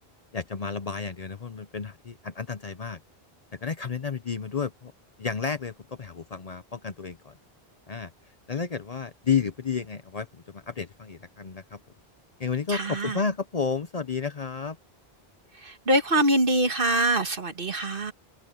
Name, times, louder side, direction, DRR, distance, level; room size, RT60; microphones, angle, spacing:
voice 1, 0.3-3.0 3.5-4.9 5.2-7.4 7.9-8.1 8.5-11.8 12.4-14.8, left 6 dB, 40° left, 0.8 m, -31 dB
voice 2, 12.7-13.2 15.5-18.1, right 1 dB, 60° right, 1.8 m, -24 dB
omnidirectional pair, 1.1 m